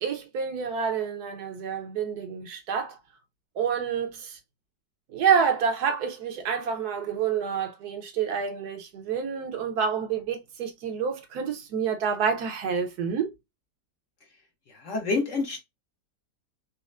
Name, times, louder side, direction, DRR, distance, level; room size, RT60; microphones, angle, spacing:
voice 1, 0.0-3.0 3.6-4.4 5.1-13.3, right 6 dB, 70° right, 1.2 m, -28 dB
voice 2, 14.7-15.6, left 3 dB, 55° left, 1.0 m, -28 dB
4.2 x 2.1 x 2.3 m
omnidirectional pair, 1.8 m